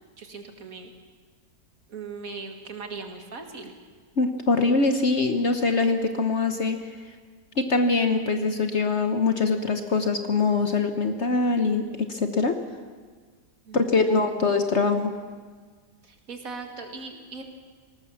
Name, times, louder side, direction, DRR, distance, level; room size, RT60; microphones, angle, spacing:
voice 1, 0.2-0.9 1.9-3.7 13.7-14.3 16.0-17.4, right 4 dB, 55° right, 5 dB, 2.2 m, -39 dB
voice 2, 4.2-6.8 7.6-12.6 13.7-15.1, left 3 dB, 45° left, 7 dB, 1.2 m, -23 dB
19.5 x 18.5 x 7.1 m, 1.5 s
omnidirectional pair, 1.8 m